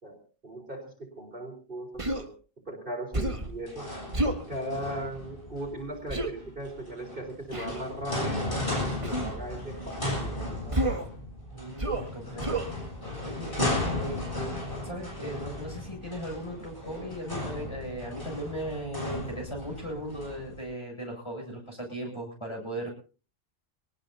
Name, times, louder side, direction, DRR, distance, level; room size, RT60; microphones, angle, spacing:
voice 1, 0.0-2.3 2.7-3.9 4.5-8.5 9.0-10.8, right 1 dB, 45° right, 3 dB, 4.2 m, -38 dB
Human voice, 2.0-2.3 3.1-3.5 4.1-4.4 6.1-6.3 7.5-7.8 9.0-9.3 10.7-11.1 11.8-12.1 12.4-12.7, right 1 dB, 25° right, 1.6 m, -29 dB
sound 1, 3.1-20.6, left 1 dB, 45° left, 7.9 m, -35 dB
voice 2, 11.5-12.6 13.2-14.4 14.8-22.9, equal, 20° left, 0 dB, 7.8 m, -37 dB
23.0 x 19.0 x 2.8 m, 0.37 s
omnidirectional pair, 1.3 m